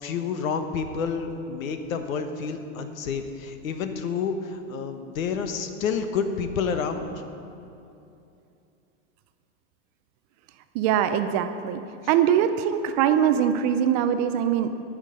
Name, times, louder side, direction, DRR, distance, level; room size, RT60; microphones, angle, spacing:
voice 1, 0.0-7.1, left 6 dB, 85° left, 7 dB, 1.3 m, -29 dB
voice 2, 10.7-11.8 12.1-14.7, right 9 dB, 35° right, 9 dB, 0.4 m, -22 dB
19.0 x 6.5 x 5.2 m, 2.7 s
supercardioid pair, 150°, 40 cm